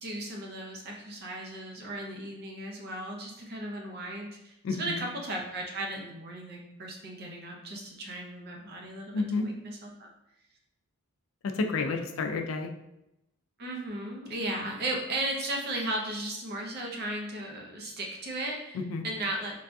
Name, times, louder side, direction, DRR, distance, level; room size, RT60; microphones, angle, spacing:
voice 1, 0.0-10.1 13.6-18.8 19.0-19.5, right 1 dB, 45° right, 0 dB, 0.5 m, -36 dB
voice 2, 4.6-5.0 9.1-9.5 11.4-12.7 18.7-19.0, left 3 dB, 65° left, 5 dB, 0.3 m, -30 dB
3.2 x 2.3 x 2.5 m, 0.86 s
head